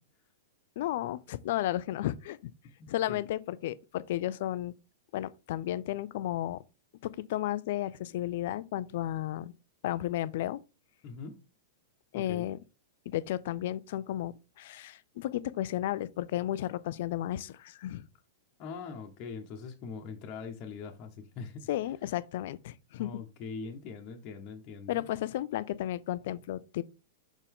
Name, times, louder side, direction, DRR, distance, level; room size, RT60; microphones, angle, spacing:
voice 1, 0.8-2.5 2.9-4.7 5.1-6.6 7.0-9.5 9.8-10.6 12.1-12.6 13.1-18.1 21.7-23.1 24.9-26.8, left 13 dB, 55° left, 0.4 m, -33 dB
voice 2, 2.8-3.2 11.0-11.4 12.1-12.5 18.6-21.7 23.0-25.1, left 5 dB, 40° left, 1.1 m, -42 dB
5.9 x 4.4 x 3.6 m
figure-of-eight pair, 100°, 0 cm